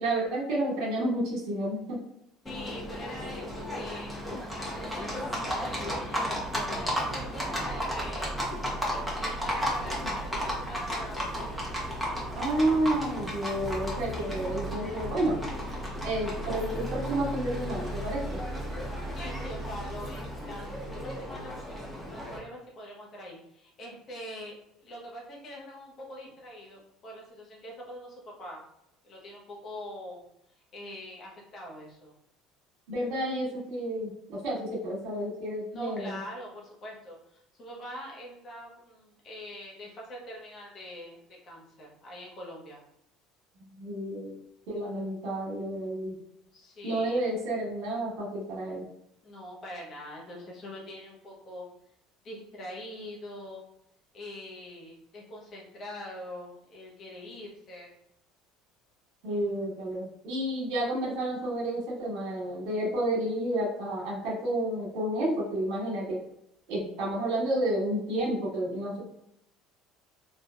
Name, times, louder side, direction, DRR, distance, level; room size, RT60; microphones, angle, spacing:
voice 1, 0.0-2.0 10.0-10.1 12.3-15.4 16.0-18.4 32.9-36.2 43.8-44.4 44.7-46.1 46.8-48.9 59.2-66.2 66.7-69.0, right 1 dB, 60° right, -4 dB, 1.4 m, -30 dB
voice 2, 2.4-4.1 4.5-8.4 8.9-11.4 19.1-21.6 22.1-24.6 24.8-28.6 29.0-30.2 30.7-32.1 35.7-42.8 46.5-47.2 49.2-51.7 52.2-53.6 54.1-57.9, left 1 dB, 45° left, -2 dB, 1.1 m, -44 dB
Livestock farm animals working animals, 2.5-22.4, equal, ahead, 1.3 m, -34 dB
3.7 x 2.7 x 2.4 m, 0.77 s
hypercardioid pair, 65°, 0 cm